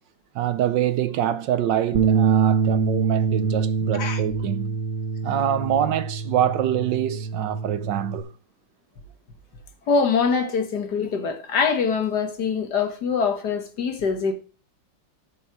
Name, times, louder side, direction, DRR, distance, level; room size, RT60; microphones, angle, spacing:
voice 1, 0.3-4.7 5.2-8.3, right 11 dB, 70° right, 1.2 m, -25 dB
Bass guitar, 1.9-8.2, right 5 dB, 50° right, 1.3 m, -25 dB
voice 2, 9.9-14.3, left 5 dB, 55° left, 1.9 m, -24 dB
13.0 x 6.2 x 4.7 m
omnidirectional pair, 2.2 m